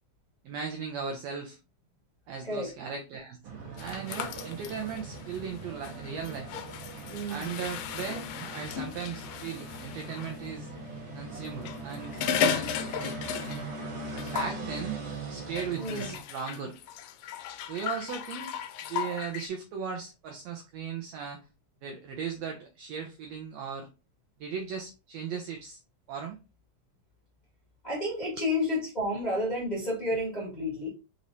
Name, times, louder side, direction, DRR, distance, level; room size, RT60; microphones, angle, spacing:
voice 1, 0.4-1.6 2.3-3.4 3.8-6.5 7.3-10.7 11.1-13.2 14.1-16.7 17.7-18.5 18.9-21.4 21.8-23.9 24.4-25.8 26.1-26.4 28.2-28.3, right 6 dB, 75° right, 2 dB, 1.6 m, -37 dB
sound 1, 3.4-16.2, right 2 dB, 60° right, 1.9 m, -41 dB
sound 2, 3.8-10.4 11.5-13.8 14.1-14.6 15.6-19.5, left 8 dB, 90° left, 2.1 m, -35 dB
voice 2, 7.1-7.5 15.8-16.1 27.8-30.9, left 1 dB, 20° left, -6 dB, 1.3 m, -31 dB
5.4 x 3.1 x 2.6 m, 0.30 s
omnidirectional pair, 3.6 m